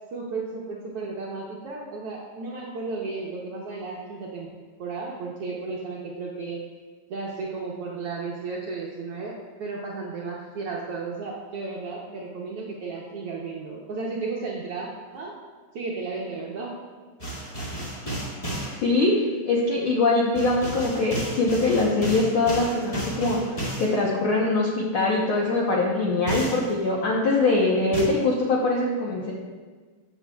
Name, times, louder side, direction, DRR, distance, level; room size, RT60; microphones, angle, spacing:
voice 1, 0.1-4.5 4.8-6.6 7.1-15.3 15.7-16.7, right 4 dB, 70° right, -3 dB, 1.4 m, -34 dB
sound 1, 17.2-18.7 20.3-23.9 26.3-26.7 27.9-28.0, right 2 dB, 15° left, 1.2 m, -32 dB
voice 2, 18.8-29.3, left 2 dB, 70° left, -3 dB, 1.2 m, -23 dB
13.5 x 8.0 x 2.3 m, 1.4 s
omnidirectional pair, 3.6 m